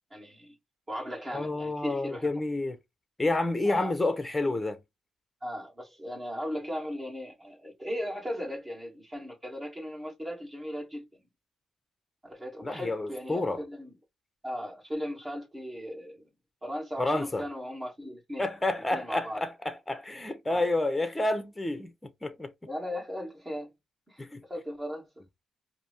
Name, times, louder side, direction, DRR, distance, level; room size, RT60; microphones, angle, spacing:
voice 1, 0.1-0.6 0.9-2.3 3.6-3.9 5.4-11.1 12.2-13.9 14.4-16.3 16.6-18.5 18.9-19.4 20.5-20.7 22.7-23.7 24.1-24.2 24.5-25.1, equal, 20° right, 2.7 m, -37 dB
voice 2, 1.3-2.8 3.2-4.8 12.6-13.6 17.0-17.5 18.4-22.5 24.2-24.4, left 2 dB, 15° left, 0.9 m, -29 dB
4.6 x 2.8 x 3.4 m
cardioid pair, 90°, 0 cm